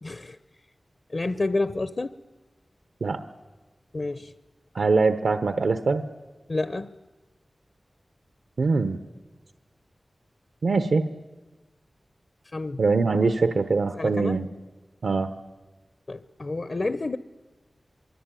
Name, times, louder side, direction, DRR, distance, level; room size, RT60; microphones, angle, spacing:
voice 1, 0.0-0.4 1.1-2.2 3.9-4.3 6.5-6.9 12.5-12.8 13.9-14.4 16.1-17.2, left 2 dB, 50° left, 13 dB, 0.8 m, -29 dB
voice 2, 4.7-6.0 8.6-9.0 10.6-11.0 12.8-14.5 15.0-15.3, right 4 dB, 90° right, 9 dB, 1.1 m, -23 dB
24.5 x 23.5 x 9.2 m, 1.2 s
wide cardioid pair, 95°, 0 cm